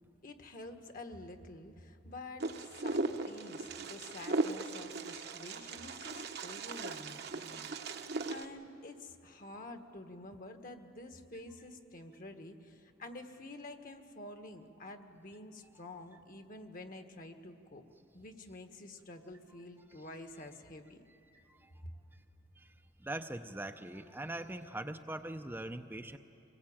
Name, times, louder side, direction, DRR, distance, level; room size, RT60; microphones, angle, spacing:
voice 1, 0.2-2.5 2.8-7.7 8.3-17.8 18.1-21.0 21.3-21.5 21.8-21.9, left 2 dB, 50° left, 6 dB, 1.5 m, -49 dB
Wind, 2.4-8.4, right 3 dB, 60° right, 1.0 m, -38 dB
voice 2, 23.0-26.2, right 1 dB, 10° right, 6 dB, 0.6 m, -42 dB
24.0 x 20.5 x 8.8 m, 2.7 s
head